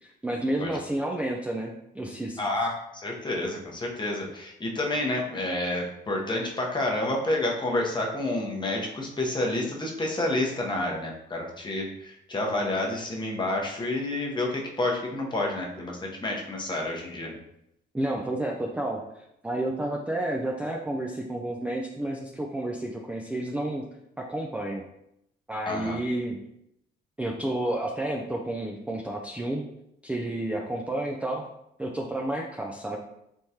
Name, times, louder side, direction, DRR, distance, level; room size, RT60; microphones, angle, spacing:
voice 1, 0.0-2.4 17.9-23.8 24.2-24.8 25.5-26.4 27.2-29.6 30.0-31.5 31.8-33.0, right 1 dB, 5° right, 0 dB, 0.4 m, -31 dB
voice 2, 2.4-17.4 25.7-26.0, left 1 dB, 25° left, -1 dB, 0.8 m, -29 dB
3.5 x 3.0 x 2.7 m, 0.80 s
cardioid pair, 90°, 20 cm